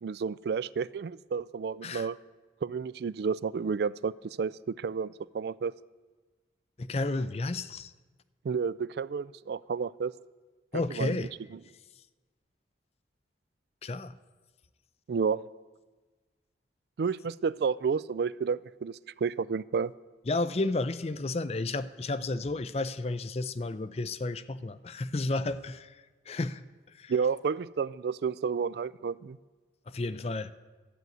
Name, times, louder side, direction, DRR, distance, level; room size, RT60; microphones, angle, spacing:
voice 1, 0.0-2.2 2.6-5.7 8.4-10.1 10.7-11.6 15.1-15.4 17.0-19.9 27.1-29.4, right 5 dB, 60° right, 20 dB, 0.3 m, -31 dB
voice 2, 6.8-7.9 10.7-11.3 13.8-14.1 20.3-26.6 26.9-27.1 29.9-30.5, left 2 dB, 35° left, 15 dB, 0.4 m, -32 dB
12.5 x 8.0 x 9.1 m, 1.3 s
head